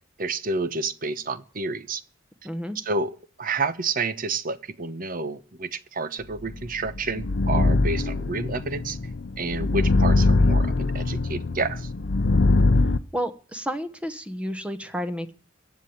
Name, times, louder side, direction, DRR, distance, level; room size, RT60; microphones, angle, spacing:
voice 1, 0.2-2.0 2.7-9.0 9.4-11.9, right 3 dB, 45° right, 1.0 m, -29 dB
voice 2, 2.4-2.8 13.1-15.3, equal, 5° right, 1.0 m, -31 dB
sound 1, 6.5-13.0, left 2 dB, 60° left, 0.7 m, -22 dB
15.5 x 9.4 x 8.7 m
head